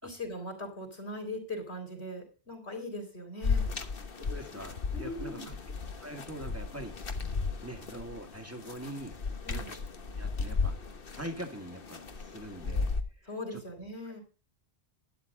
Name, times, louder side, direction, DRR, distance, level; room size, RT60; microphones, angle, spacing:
voice 1, 0.0-3.7 4.9-5.5 9.4-9.7 13.3-14.2, left 1 dB, 75° left, 4 dB, 4.1 m, -40 dB
sound 1, 3.4-13.0, left 4 dB, 60° left, 1.4 m, -35 dB
voice 2, 4.2-5.6 6.0-6.9 7.6-9.1 9.5-9.8 10.2-10.8 11.1-13.6 14.0-14.1, right 1 dB, 15° right, 5 dB, 2.0 m, -43 dB
12.0 x 10.5 x 3.8 m, 0.37 s
omnidirectional pair, 1.1 m